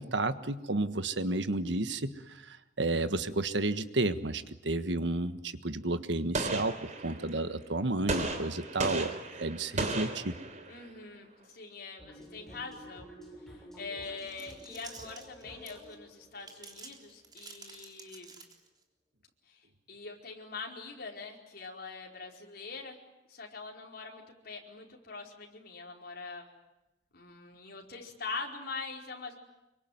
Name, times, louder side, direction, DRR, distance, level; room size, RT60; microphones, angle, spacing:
voice 1, 0.0-9.1 9.4-10.3, right 2 dB, 75° right, 11 dB, 1.5 m, -32 dB
Gunshot gunfire, 6.3-7.4 8.1-10.9, right 2 dB, 45° right, 3.6 m, -35 dB
voice 2, 10.7-13.1 13.7-18.4 19.5-23.0 23.3-26.5 27.1-29.3, left 4 dB, 60° left, 1 dB, 4.6 m, -43 dB
sound 1, 12.0-17.8, equal, ahead, 7.2 m, -51 dB
sound 2, 14.0-16.0 16.4-18.8, right 4 dB, 25° right, 3.6 m, -50 dB
26.0 x 24.0 x 9.4 m, 0.96 s
head